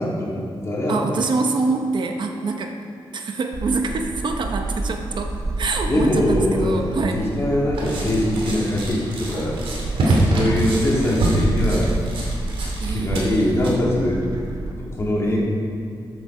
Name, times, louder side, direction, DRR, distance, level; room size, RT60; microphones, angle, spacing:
voice 1, 0.0-1.0 5.8-9.6 10.2-11.9 12.9-14.2 14.8-15.4, left 1 dB, 30° left, -5 dB, 3.0 m, -22 dB
voice 2, 0.9-2.8 3.1-7.2 10.0-10.3 12.8-13.6, right 3 dB, 55° right, 4 dB, 0.9 m, -25 dB
Gull seagull, 3.5-14.7, right 2 dB, 40° right, 1.4 m, -30 dB
sound 1, 7.7-13.7, right 1 dB, 80° right, 2.7 m, -24 dB
13.0 x 8.1 x 4.9 m, 2.4 s
wide cardioid pair, 120°, 9 cm